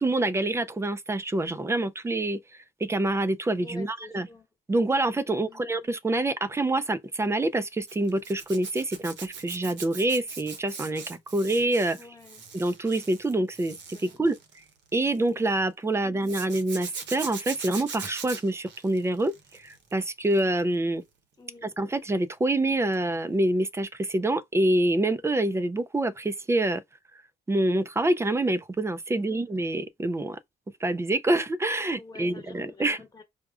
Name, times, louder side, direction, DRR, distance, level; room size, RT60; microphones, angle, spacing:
voice 1, 0.0-2.4 2.8-4.3 4.7-12.0 12.5-14.3 14.9-19.3 19.6-21.0 21.6-26.8 27.5-30.4 30.8-33.0, right 2 dB, 15° right, 0.3 m, -26 dB
voice 2, 3.6-4.5 5.3-5.7 12.0-12.4 13.9-14.1 21.4-21.7 29.1-29.4 32.0-33.2, left 3 dB, 20° left, 1.0 m, -48 dB
Zipper (clothing), 7.9-15.3 16.2-19.9 20.2-20.6 22.9-23.1 23.3-23.4, right 6 dB, 65° right, 0.8 m, -41 dB
4.7 x 2.1 x 2.4 m
cardioid pair, 90°, 20 cm